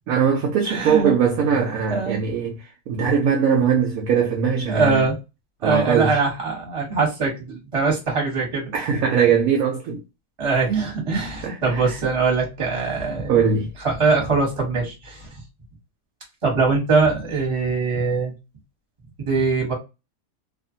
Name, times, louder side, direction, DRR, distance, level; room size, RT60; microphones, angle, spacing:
voice 1, 0.1-5.1 5.6-6.2 8.7-10.0 11.1-12.0 13.3-13.7, right 6 dB, 70° right, 0.9 m, -21 dB
voice 2, 0.6-1.1 1.9-2.2 4.7-5.1 5.6-8.7 10.4-13.4 13.8-15.3 16.4-18.3 19.2-19.7, right 4 dB, 20° right, 1.0 m, -22 dB
2.7 x 2.4 x 2.6 m
omnidirectional pair, 1.8 m